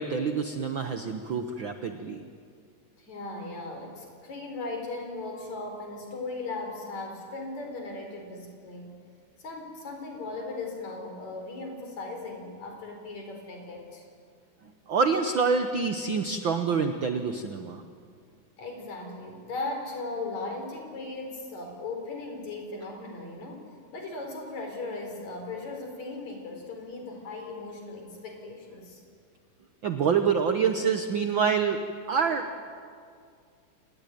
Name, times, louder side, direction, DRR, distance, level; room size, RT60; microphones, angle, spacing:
voice 1, 0.0-2.2 14.9-17.8 29.8-31.8 32.1-32.7, right 5 dB, 85° right, 7 dB, 1.0 m, -26 dB
voice 2, 3.0-9.0 9.4-14.0 18.6-29.0, left 3 dB, 55° left, 3 dB, 5.4 m, -38 dB
29.5 x 19.0 x 9.3 m, 2.2 s
omnidirectional pair, 3.8 m